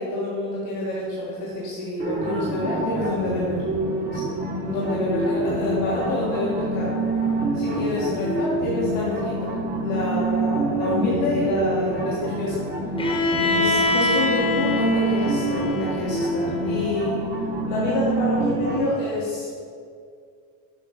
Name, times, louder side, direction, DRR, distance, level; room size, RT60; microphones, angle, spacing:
voice 1, 0.0-3.6 4.1-6.9 7.5-9.5 9.8-12.6 13.0-13.2 13.5-17.3 17.6-19.5, left 2 dB, 90° left, -7 dB, 1.4 m, -27 dB
sound 1, 2.0-18.8, right 2 dB, 25° right, 1.0 m, -26 dB
Bowed string instrument, 13.0-16.9, left 2 dB, 15° left, 0.9 m, -25 dB
7.7 x 3.0 x 5.0 m, 2.2 s
cardioid pair, 115°, 37 cm